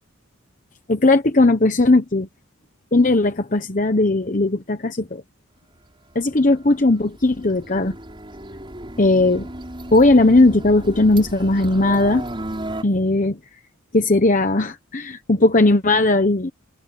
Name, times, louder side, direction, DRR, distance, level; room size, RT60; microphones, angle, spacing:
voice 1, 0.9-2.3 2.9-5.2 6.1-8.0 9.0-9.5 9.9-12.2 12.8-13.4 13.9-16.5, left 2 dB, 40° left, 1.0 m, -17 dB
sound 1, 6.4-12.8, right 1 dB, 25° right, 6.0 m, -34 dB
head